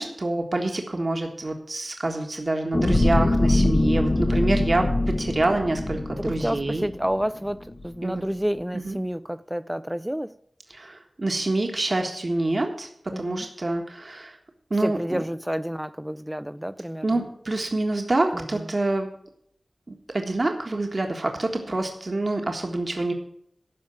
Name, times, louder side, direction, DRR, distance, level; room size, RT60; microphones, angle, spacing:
voice 1, 0.0-6.9 8.0-8.2 8.7-9.0 10.7-12.9 13.2-14.4 14.7-15.2 17.0-19.1 19.9-23.1, right 2 dB, 50° right, 1.5 m, -26 dB
sound 1, 2.7-7.2 7.7-7.8, left 1 dB, 40° left, 1.0 m, -23 dB
voice 2, 6.2-10.4 13.1-13.5 14.8-17.2 18.3-18.7, equal, 5° right, 0.4 m, -30 dB
13.0 x 5.2 x 9.0 m
wide cardioid pair, 50°, 0 cm